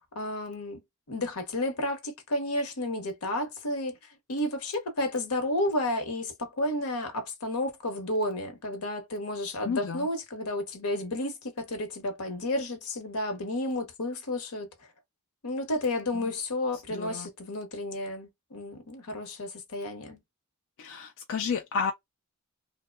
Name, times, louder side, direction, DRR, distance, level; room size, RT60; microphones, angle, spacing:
voice 1, 0.1-0.8 1.1-4.0 4.3-14.7 15.4-20.2, left 1 dB, 85° left, 0.9 m, -31 dB
voice 2, 9.6-10.1 16.1-16.3 16.7-17.3 20.8-21.9, left 5 dB, 65° left, 0.4 m, -32 dB
2.7 x 2.1 x 2.2 m
head